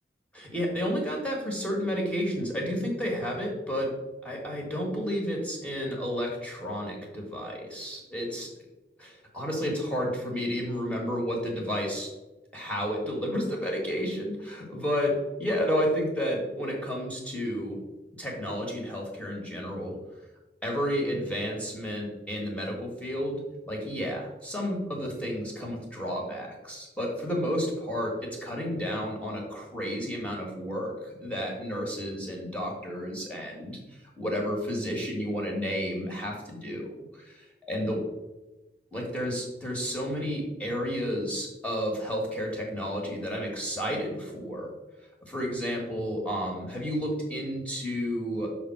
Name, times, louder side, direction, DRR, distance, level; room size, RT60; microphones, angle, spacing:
voice 1, 0.3-3.9 4.2-8.5 9.0-12.1 12.5-15.1 15.4-17.8 18.2-19.9 20.6-36.9 37.7-38.0 38.9-44.7 45.2-48.5, equal, 10° left, -2 dB, 1.4 m, -31 dB
5.9 x 3.5 x 5.8 m, 1.1 s
head